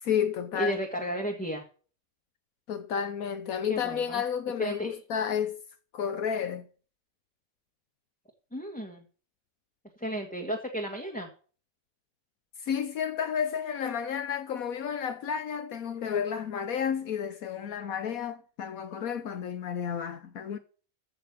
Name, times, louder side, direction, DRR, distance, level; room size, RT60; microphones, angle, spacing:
voice 1, 0.0-0.8 2.7-5.6 5.9-6.7 12.6-20.6, left 8 dB, 75° left, 1.3 m, -31 dB
voice 2, 0.5-1.6 3.7-4.2 4.6-5.0 8.5-9.0 10.0-11.3, equal, 5° left, 1.6 m, -33 dB
14.5 x 5.6 x 7.1 m
omnidirectional pair, 1.5 m